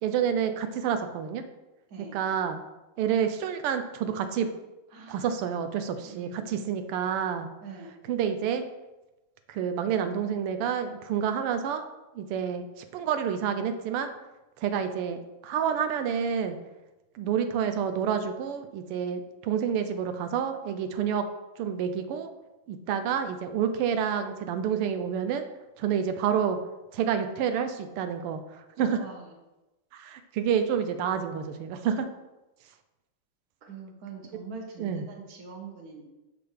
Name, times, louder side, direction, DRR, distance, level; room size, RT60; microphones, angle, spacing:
voice 1, 0.0-1.4 2.0-2.6 3.0-4.5 5.1-7.5 8.1-8.6 9.5-11.8 12.1-14.1 14.6-16.6 17.1-21.3 21.6-22.3 22.7-25.5 25.8-26.6 26.9-29.0 29.9-32.1 34.8-35.0, right 8 dB, 90° right, 8 dB, 1.6 m, -28 dB
voice 2, 1.9-2.2 4.9-5.3 6.0-6.7 7.6-8.0 29.0-29.2 33.6-36.1, right 5 dB, 45° right, 1 dB, 1.6 m, -43 dB
9.2 x 6.0 x 3.3 m, 1.0 s
omnidirectional pair, 2.4 m